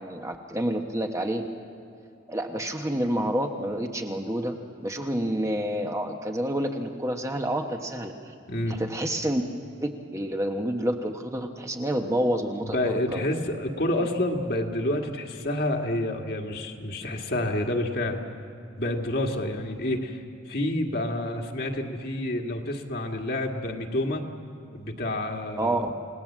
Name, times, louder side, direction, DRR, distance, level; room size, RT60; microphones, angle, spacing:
voice 1, 0.0-1.5 2.3-4.5 4.8-8.1 8.6-9.4 9.8-13.3 14.0-14.1 25.6-25.8, right 1 dB, 15° right, 3 dB, 1.1 m, -28 dB
voice 2, 8.5-8.8 12.6-18.2 18.8-20.2 20.5-24.2 24.7-25.8, left 1 dB, 55° left, 2 dB, 1.9 m, -28 dB
29.0 x 18.5 x 7.4 m, 2.5 s
head